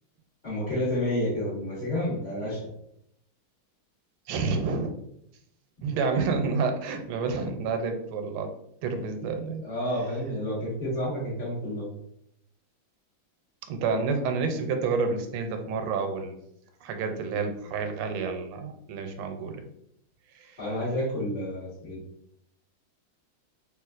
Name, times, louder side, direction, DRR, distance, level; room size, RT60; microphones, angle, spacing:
voice 1, 0.4-2.7 9.6-11.8 20.6-22.0, left 1 dB, 25° left, -13 dB, 1.1 m, -30 dB
voice 2, 4.3-4.9 5.8-8.5 8.8-9.6 13.7-16.4 16.8-19.6 20.3-20.6, right 4 dB, 90° right, 5 dB, 1.5 m, -29 dB
3.3 x 3.0 x 2.4 m, 0.74 s
omnidirectional pair, 2.3 m